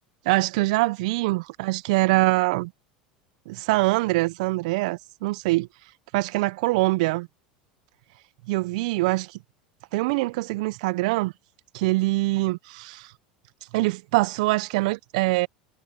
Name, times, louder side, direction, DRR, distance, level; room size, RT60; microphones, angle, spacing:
voice 1, 0.2-2.7 3.5-5.7 6.1-7.3 8.5-9.3 9.9-11.3 11.7-13.1 13.7-15.5, right 22 dB, 65° right, 0.8 m, -24 dB
hypercardioid pair, 80°, 4 cm